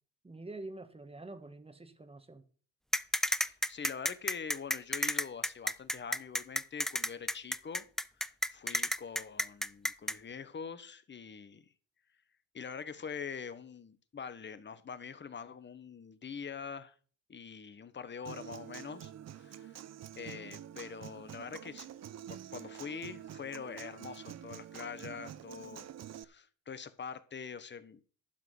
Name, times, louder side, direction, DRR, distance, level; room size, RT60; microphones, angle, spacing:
voice 1, 0.2-2.4, right 2 dB, 15° right, 1.5 m, -46 dB
sound 1, 2.9-10.1, equal, ahead, 0.4 m, -31 dB
voice 2, 3.4-7.8 8.2-11.6 12.5-16.9 17.3-19.8 20.2-21.9 22.2-25.9 26.1-28.0, left 6 dB, 30° left, 1.1 m, -44 dB
Human voice / Acoustic guitar, 18.2-26.2, right 10 dB, 45° right, 0.7 m, -47 dB
12.0 x 4.9 x 7.8 m
cardioid pair, 95°, 36 cm